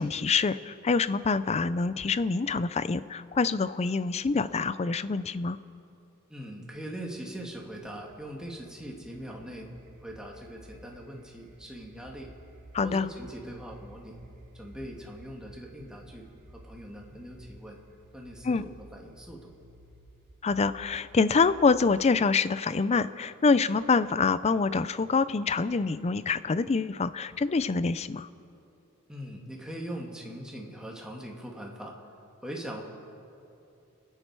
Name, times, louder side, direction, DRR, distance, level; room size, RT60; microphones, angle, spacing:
voice 1, 0.0-5.6 12.7-13.1 18.4-18.7 20.4-28.3, left 4 dB, 30° left, 15 dB, 0.4 m, -26 dB
voice 2, 6.3-9.7 10.0-12.3 12.8-14.2 14.5-16.3 16.5-17.8 18.1-19.5 29.1-32.0 32.4-32.9, right 1 dB, 5° right, -1 dB, 1.8 m, -41 dB
sound 1, 7.1-21.6, right 1 dB, 40° right, 1.5 m, -54 dB
29.0 x 9.9 x 4.7 m, 2.7 s
head